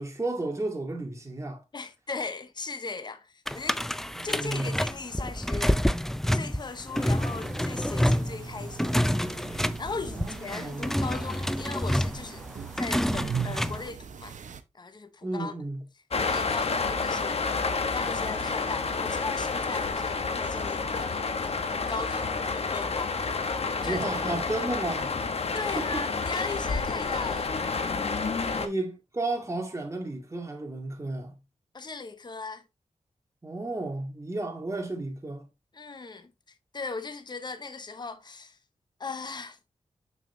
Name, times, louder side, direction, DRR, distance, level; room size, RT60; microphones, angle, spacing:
voice 1, 0.0-1.6 4.2-4.8 10.1-11.0 15.2-15.8 23.8-25.1 25.8-26.1 28.5-31.3 33.4-35.5, right 2 dB, 25° right, 2.2 m, -33 dB
voice 2, 1.7-3.8 4.2-5.8 6.3-12.4 12.8-14.4 14.7-15.5 16.2-17.4 17.9-21.2 21.7-23.2 23.6-24.1 24.4-24.7 25.5-27.6 28.5-28.6 31.7-32.6 35.7-36.3 36.7-38.6 39.0-39.6, left 4 dB, 35° left, 0.8 m, -38 dB
sound 1, 3.5-13.9, equal, 5° left, 0.4 m, -28 dB
sound 2, 6.9-14.6, right 7 dB, 80° right, 0.7 m, -40 dB
sound 3, 16.1-28.7, left 4 dB, 55° left, 1.0 m, -29 dB
6.6 x 6.0 x 2.7 m
wide cardioid pair, 100°, 13 cm